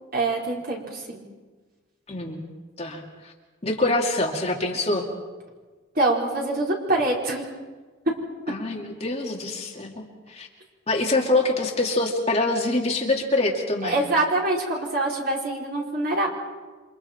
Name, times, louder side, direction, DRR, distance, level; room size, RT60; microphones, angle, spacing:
voice 1, 0.1-1.2 5.9-7.4 13.8-16.3, right 2 dB, 50° right, -3 dB, 4.7 m, -24 dB
voice 2, 2.1-2.4 2.8-3.3 3.6-5.1 8.5-10.5 10.9-14.1, left 2 dB, 30° left, 0 dB, 2.5 m, -25 dB
29.0 x 25.5 x 4.5 m, 1.3 s
head